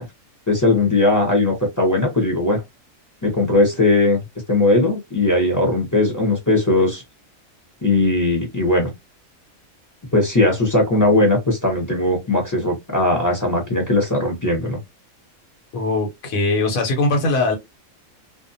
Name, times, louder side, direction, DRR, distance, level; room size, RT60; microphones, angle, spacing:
voice 1, 0.5-2.6 3.2-4.2 4.5-7.0 7.8-8.9 10.1-14.8, left 2 dB, 20° left, 0.6 m, -18 dB
voice 2, 15.7-17.6, left 2 dB, 80° left, 1.3 m, -20 dB
2.5 x 2.2 x 2.6 m
omnidirectional pair, 1.4 m